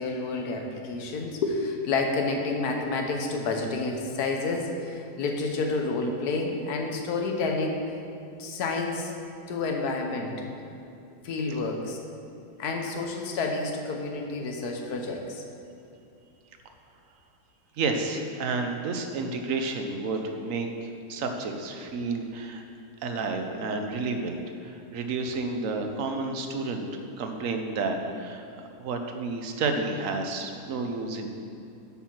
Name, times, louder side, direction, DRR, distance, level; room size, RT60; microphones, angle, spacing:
voice 1, 0.0-7.8 8.4-9.1 9.5-10.4 11.2-12.0 12.6-15.4, left 3 dB, 80° left, 2 dB, 1.4 m, -29 dB
voice 2, 17.8-22.6 23.0-26.9 27.2-28.4 28.8-31.3, right 3 dB, 60° right, 5 dB, 1.1 m, -30 dB
8.7 x 5.6 x 5.9 m, 2.6 s
omnidirectional pair, 1.6 m